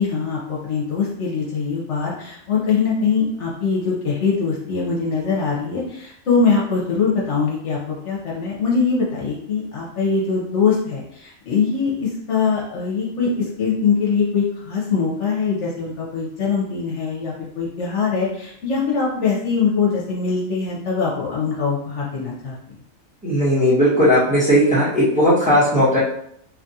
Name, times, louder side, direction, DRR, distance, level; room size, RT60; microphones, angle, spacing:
voice 1, 0.0-22.5, left 5 dB, 65° left, -5 dB, 1.0 m, -22 dB
voice 2, 23.2-26.0, equal, 5° right, -9 dB, 0.9 m, -16 dB
2.8 x 2.4 x 2.7 m, 0.71 s
omnidirectional pair, 1.4 m